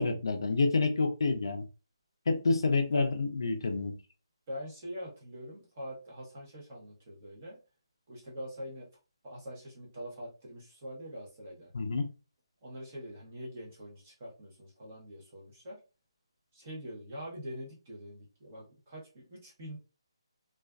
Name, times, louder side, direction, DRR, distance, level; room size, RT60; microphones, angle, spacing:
voice 1, 0.0-1.7 2.3-4.0 11.7-12.0, left 3 dB, 55° left, 0.4 m, -28 dB
voice 2, 4.5-7.6 8.1-8.8 9.2-11.7 12.6-15.8 16.5-19.8, equal, 25° right, 0.9 m, -44 dB
2.4 x 2.3 x 2.2 m
hypercardioid pair, 180°, 3 cm